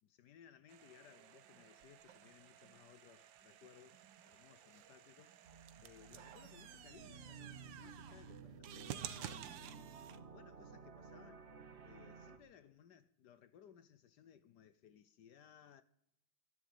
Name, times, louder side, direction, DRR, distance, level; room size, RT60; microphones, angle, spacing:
voice 1, 0.0-5.4 5.8-9.9 10.3-11.4 11.8-15.8, left 9 dB, 65° left, 1.2 m, -62 dB
sound 1, 0.7-10.2, right 10 dB, 70° right, 1.5 m, -53 dB
sound 2, 5.4-12.4, right 5 dB, 40° right, 1.4 m, -55 dB
13.0 x 11.5 x 9.0 m
omnidirectional pair, 2.2 m